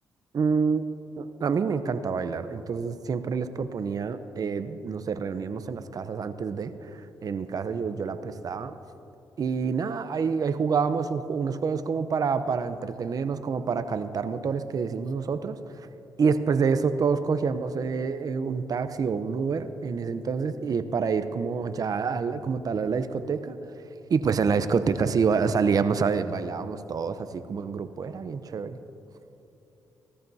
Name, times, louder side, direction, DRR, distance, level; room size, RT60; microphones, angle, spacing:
voice 1, 0.3-0.8 1.2-8.7 9.4-15.6 16.2-23.6 24.1-28.8, right 5 dB, 55° right, 11 dB, 0.7 m, -27 dB
17.0 x 13.5 x 2.8 m, 3.0 s
cardioid pair, 60°, 8 cm